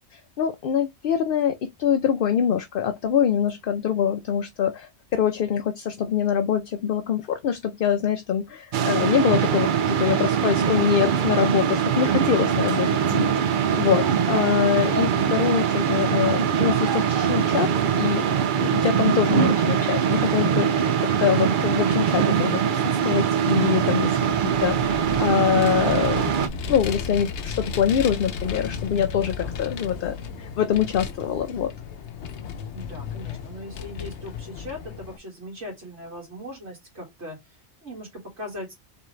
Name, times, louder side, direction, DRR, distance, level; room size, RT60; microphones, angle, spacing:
voice 1, 0.1-17.7 18.0-18.2 18.5-26.3 26.7-31.7, left 8 dB, 60° left, 0.7 m, -24 dB
sound 1, 8.7-26.5, right 8 dB, 55° right, 0.6 m, -22 dB
Vehicle, 24.3-35.2, left 6 dB, 80° left, 1.0 m, -34 dB
voice 2, 32.7-38.7, left 1 dB, 80° right, 2.2 m, -39 dB
3.8 x 3.7 x 3.2 m
omnidirectional pair, 1.2 m